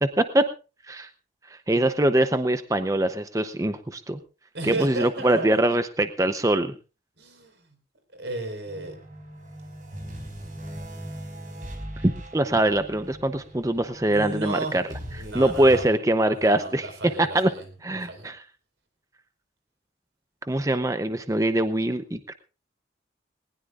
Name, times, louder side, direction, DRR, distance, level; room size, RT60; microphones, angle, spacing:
voice 1, 0.0-0.5 0.9-1.1 1.7-4.2 4.6-6.7 12.0-14.8 15.3-16.9 17.2-17.5 17.8-18.4 20.5-22.3, right 1 dB, 20° right, 9 dB, 0.7 m, -23 dB
voice 2, 4.5-5.8 7.2-7.7 8.1-9.0 14.1-14.8 15.2-15.8 16.3-17.7 18.1-18.3, right 2 dB, 80° right, 6 dB, 4.7 m, -34 dB
sound 1, 8.7-15.8, equal, 45° right, 5.6 m, -40 dB
20.0 x 19.5 x 2.5 m, 0.33 s
head